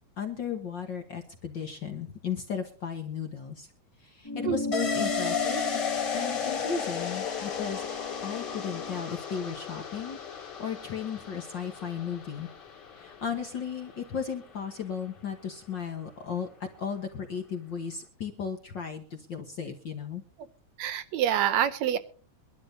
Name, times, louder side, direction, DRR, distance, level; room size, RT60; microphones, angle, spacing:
voice 1, 0.2-3.7 4.0-5.7 6.1-7.9 8.2-12.5 12.9-20.2, left 7 dB, 50° left, 5 dB, 1.4 m, -35 dB
sound 1, 4.2-9.0, left 2 dB, 20° left, 0.5 m, -36 dB
sound 2, 4.7-14.1 14.4-14.5, left 6 dB, 35° left, 2.6 m, -34 dB
voice 2, 20.8-22.0, right 10 dB, 75° right, 12 dB, 1.8 m, -26 dB
23.5 x 12.0 x 2.7 m, 0.39 s
omnidirectional pair, 3.5 m